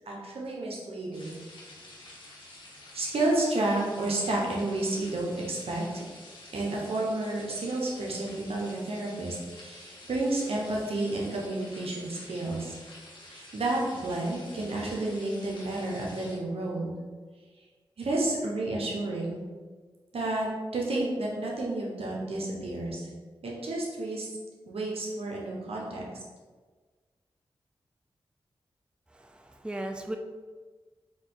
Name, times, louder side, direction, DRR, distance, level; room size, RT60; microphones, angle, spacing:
voice 1, 0.1-1.4 2.9-6.0 6.5-12.7 13.3-16.9 18.0-19.4 20.1-23.1 23.4-24.3 24.7-26.0, right 2 dB, 80° right, -3 dB, 1.0 m, -31 dB
sound 1, 1.1-16.4, left 1 dB, 55° left, 1.4 m, -49 dB
voice 2, 29.1-30.2, right 1 dB, 10° right, 4 dB, 0.4 m, -37 dB
4.3 x 2.8 x 3.9 m, 1.4 s
cardioid pair, 45°, 10 cm